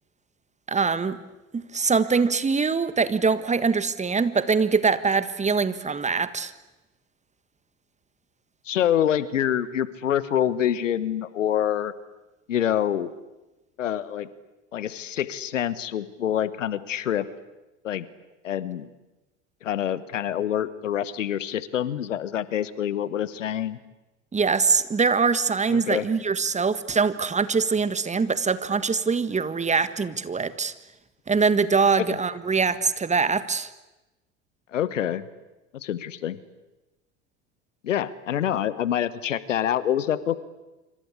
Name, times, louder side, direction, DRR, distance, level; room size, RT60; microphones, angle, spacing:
voice 1, 0.7-1.2 1.5-6.5 24.3-30.7 31.3-33.7, right 5 dB, 20° right, 14 dB, 1.6 m, -23 dB
voice 2, 8.7-11.9 12.5-13.1 13.8-14.3 14.7-17.3 17.8-18.1 18.4-18.9 19.6-23.8 25.7-26.1 32.0-32.2 34.7-35.2 35.7-36.4 37.8-40.4, left 10 dB, 80° left, 17 dB, 1.4 m, -26 dB
27.0 x 25.5 x 8.4 m, 1.0 s
figure-of-eight pair, 75°, 37 cm